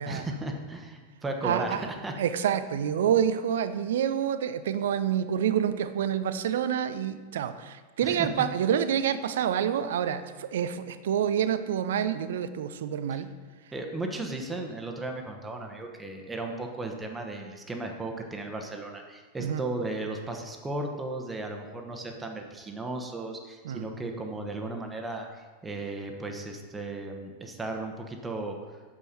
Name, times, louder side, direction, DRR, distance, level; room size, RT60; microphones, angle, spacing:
voice 1, 0.1-2.1 8.0-8.5 13.1-13.2 13.7-28.6, right 2 dB, 10° right, 3 dB, 1.1 m, -35 dB
voice 2, 1.4-1.8 2.2-13.3 19.4-19.6 23.6-23.9, right 9 dB, 60° right, 12 dB, 0.5 m, -27 dB
8.4 x 7.1 x 4.3 m, 1.3 s
figure-of-eight pair, 90°, 0 cm